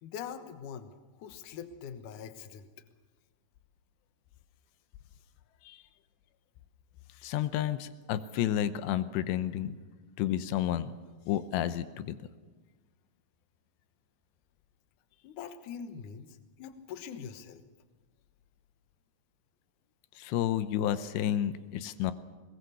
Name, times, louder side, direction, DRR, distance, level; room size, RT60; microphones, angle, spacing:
voice 1, 0.0-0.9 1.2-2.7 15.2-17.6, left 7 dB, 65° left, 9 dB, 2.3 m, -43 dB
voice 2, 7.2-9.7 10.2-10.9 11.3-12.2 20.2-22.1, left 11 dB, 90° left, 12 dB, 3.0 m, -31 dB
21.5 x 20.5 x 6.9 m, 1.4 s
omnidirectional pair, 4.9 m